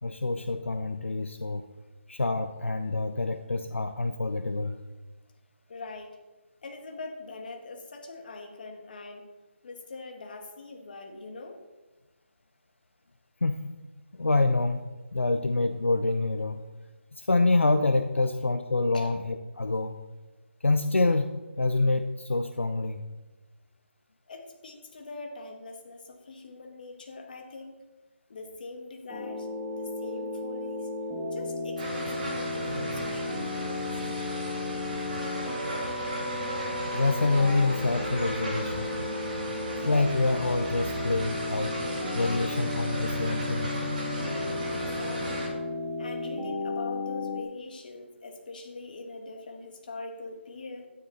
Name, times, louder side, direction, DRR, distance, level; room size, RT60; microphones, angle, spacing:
voice 1, 0.0-1.6 2.1-4.8 13.4-13.6 14.2-14.8 15.1-16.6 17.1-20.0 20.6-23.0 36.9-38.9 39.9-41.8 42.1-44.0, left 3 dB, 75° left, 7 dB, 0.8 m, -26 dB
voice 2, 5.7-6.2 6.6-9.3 9.6-11.6 18.2-18.3 18.9-19.1 24.3-27.8 28.3-29.5 29.7-30.9 31.3-34.0 44.7-45.5 46.0-50.9, left 3 dB, 45° left, 3 dB, 2.0 m, -43 dB
sound 1, 29.1-47.4, left 2 dB, 5° right, 2.1 m, -34 dB
sound 2, 31.8-45.5, right 1 dB, 35° right, 4.3 m, -36 dB
12.5 x 9.6 x 4.1 m, 1.1 s
figure-of-eight pair, 155°, 7 cm